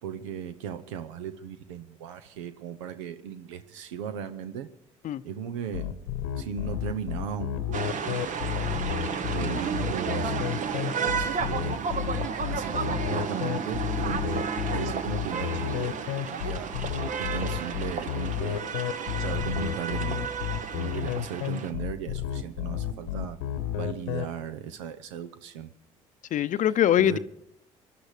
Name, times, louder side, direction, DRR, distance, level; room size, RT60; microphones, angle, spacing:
voice 1, 0.0-4.7 5.2-5.9 6.4-8.7 9.3-11.8 12.5-16.7 17.2-18.6 19.2-20.4 20.7-23.4 23.7-25.7 26.5-26.7 27.0-27.2, right 8 dB, 85° right, 0.7 m, -37 dB
sound 1, 5.7-24.2, left 11 dB, 90° left, 1.0 m, -31 dB
sound 2, 7.7-21.7, right 6 dB, 55° right, 1.3 m, -32 dB
voice 2, 26.3-27.2, left 11 dB, 55° left, 0.6 m, -22 dB
20.0 x 12.0 x 4.9 m
hypercardioid pair, 60°, 15 cm